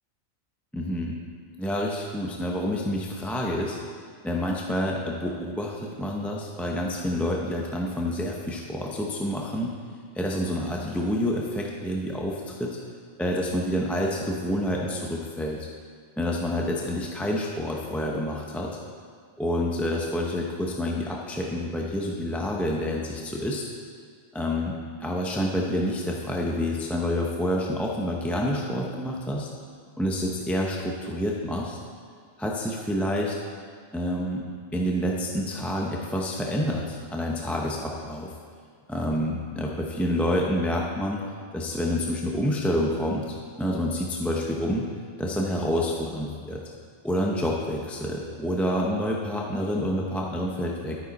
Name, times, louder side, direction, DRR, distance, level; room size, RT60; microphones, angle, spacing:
voice 1, 0.7-1.2 1.6-3.8 4.2-9.7 10.1-12.8 13.2-15.7 16.2-18.7 19.4-23.6 24.3-24.7 25.0-29.5 30.0-31.8 32.4-33.4 33.9-34.4 34.7-38.3 38.9-41.2 41.5-44.9 45.2-46.6 47.0-51.0, equal, ahead, -2 dB, 0.5 m, -28 dB
11.5 x 9.2 x 4.1 m, 2.1 s
omnidirectional pair, 1.3 m